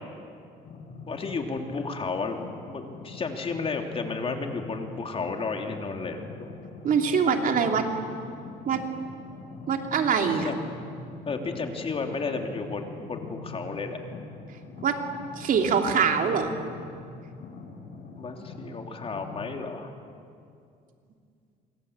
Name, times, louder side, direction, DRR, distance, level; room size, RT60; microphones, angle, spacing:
sound 1, 0.6-19.5, left 3 dB, 50° left, 4.2 m, -43 dB
voice 1, 1.1-2.4 2.6-6.5 10.2-10.6 11.3-14.0 18.2-19.9, left 4 dB, 35° left, 3 dB, 3.2 m, -32 dB
voice 2, 6.8-7.8 8.7-8.8 9.7-10.5 14.8-15.0 15.4-16.5, right 6 dB, 55° right, 4 dB, 2.9 m, -23 dB
27.5 x 25.5 x 8.2 m, 2.4 s
cardioid pair, 110°, 17 cm